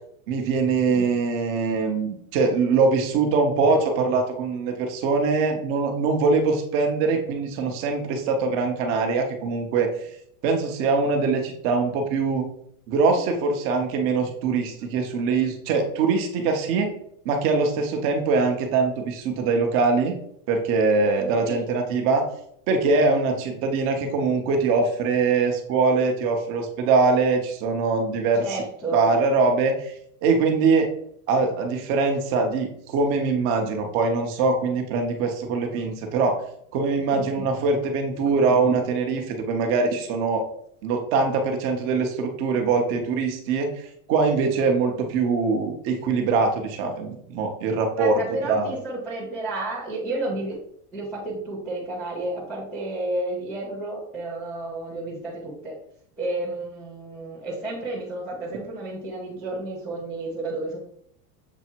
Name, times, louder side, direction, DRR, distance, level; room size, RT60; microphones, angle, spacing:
voice 1, 0.3-9.9 10.4-12.4 12.9-16.9 17.2-20.2 20.5-22.2 22.7-28.4 28.9-29.7 30.2-30.9 31.3-36.3 36.7-40.4 40.8-48.2 48.5-48.7, right 4 dB, 25° right, 3 dB, 0.7 m, -22 dB
voice 2, 28.4-29.1 37.1-37.4 48.0-50.6 50.9-55.7 56.2-60.8, right 2 dB, ahead, -13 dB, 0.4 m, -31 dB
7.1 x 3.3 x 4.4 m, 0.69 s
supercardioid pair, 175°, 47 cm